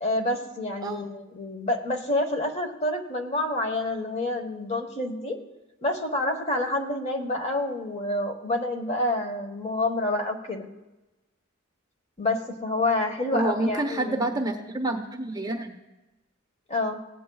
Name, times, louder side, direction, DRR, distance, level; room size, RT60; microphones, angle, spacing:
voice 1, 0.0-5.4 5.8-10.7 12.2-14.3 16.7-17.0, left 2 dB, 35° left, 4 dB, 1.1 m, -28 dB
voice 2, 13.3-15.8, right 2 dB, 20° right, 3 dB, 0.8 m, -28 dB
17.5 x 8.7 x 2.3 m, 1.0 s
head